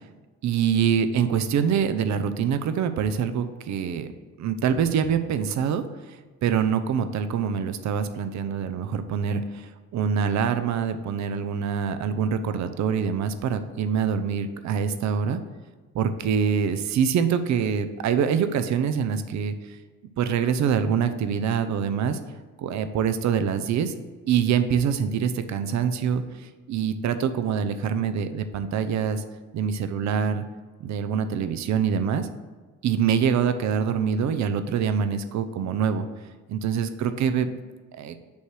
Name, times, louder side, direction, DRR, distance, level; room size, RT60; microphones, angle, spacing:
voice 1, 0.4-4.1 4.4-15.4 15.9-19.8 20.2-22.2 22.6-23.9 24.3-29.2 29.5-30.4 30.8-32.3 32.8-36.1 36.5-37.5 37.9-38.2, right 7 dB, 65° right, 10 dB, 0.6 m, -25 dB
8.4 x 3.3 x 6.1 m, 1.4 s
cardioid pair, 90°, 30 cm